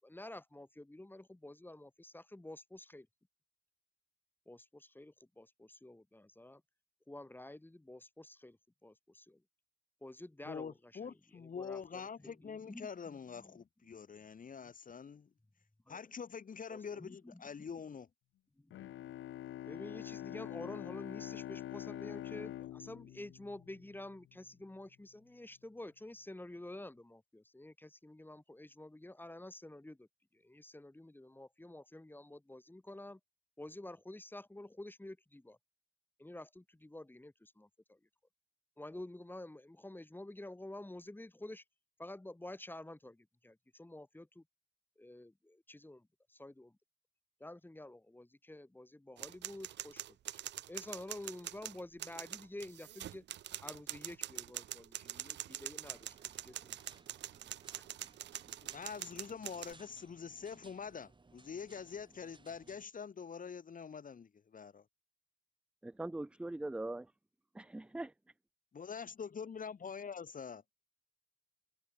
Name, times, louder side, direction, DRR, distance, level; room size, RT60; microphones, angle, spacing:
voice 1, 0.0-3.1 4.5-6.6 7.1-9.4 10.0-10.7 11.0-13.5 15.9-16.1 16.7-17.4 18.6-18.8 19.6-33.2 33.6-35.6 36.2-38.0 38.8-41.6 42.0-44.4 45.0-46.8 47.4-50.4 50.7-53.3 53.6-56.2 56.4-56.7 57.8-57.9, left 1 dB, 10° left, 7.7 m, -50 dB
voice 2, 10.4-15.3 15.9-18.1 58.6-64.8 68.7-70.6, left 6 dB, 40° left, 3.7 m, -45 dB
Bowed string instrument, 18.7-24.2, left 13 dB, 75° left, 2.5 m, -45 dB
sound 1, 49.2-59.7, right 12 dB, 65° right, 0.7 m, -45 dB
sound 2, 55.8-62.9, right 3 dB, 25° right, 7.1 m, -63 dB
voice 3, 65.8-67.1 67.5-68.1, right 2 dB, 5° right, 0.4 m, -41 dB
cardioid pair, 90°, 20 cm